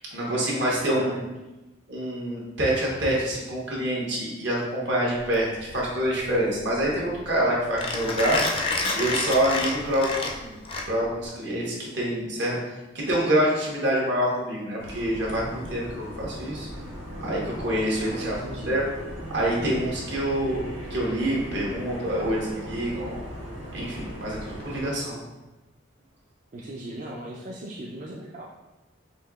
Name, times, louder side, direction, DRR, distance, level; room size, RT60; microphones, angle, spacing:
voice 1, 0.1-1.2 1.9-8.4 8.9-12.6 12.9-16.7 17.2-18.3 18.7-18.8 19.3-20.6 20.9-23.2 23.7-25.1, right 1 dB, 65° right, -4 dB, 1.1 m, -26 dB
voice 2, 0.8-1.2 18.0-18.8 26.5-28.5, right 1 dB, 40° right, -4 dB, 0.4 m, -38 dB
Mechanisms, 5.2-11.3, left 3 dB, 30° left, 0.4 m, -29 dB
sound 1, 14.8-24.9, equal, 85° right, 1.3 m, -38 dB
5.4 x 2.8 x 2.3 m, 1.0 s
head